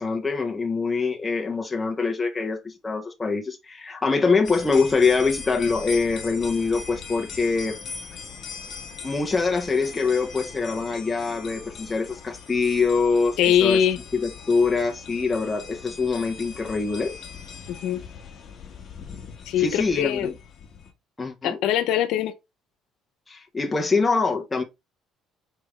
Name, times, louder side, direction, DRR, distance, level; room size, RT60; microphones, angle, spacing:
voice 1, 0.0-7.8 9.0-13.8 14.1-17.1 19.6-20.3 21.2-21.6 23.3-24.6, left 4 dB, 15° left, 0.6 m, -24 dB
sound 1, 4.4-20.9, left 6 dB, 40° left, 1.0 m, -40 dB
voice 2, 13.4-14.0 17.7-18.0 19.5-20.3 21.4-22.3, left 10 dB, 65° left, 0.7 m, -22 dB
4.8 x 3.4 x 3.0 m
cardioid pair, 165°, 0 cm